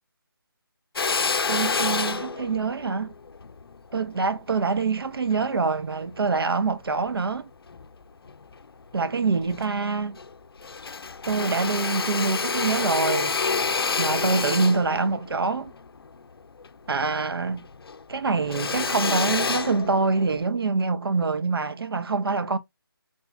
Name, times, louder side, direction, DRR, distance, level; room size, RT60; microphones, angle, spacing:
Drill, 1.0-5.5 6.1-7.2 7.7-8.6 9.0-9.1 9.3-10.3 10.6-17.3 17.6-20.4, left 5 dB, 85° left, 0.4 m, -29 dB
voice 1, 1.5-3.1 3.9-7.5 8.9-10.2 11.3-13.4 14.0-15.7 16.9-17.7 18.1-22.6, right 4 dB, 80° right, 0.6 m, -25 dB
3.7 x 3.1 x 2.4 m
hypercardioid pair, 180°, 12 cm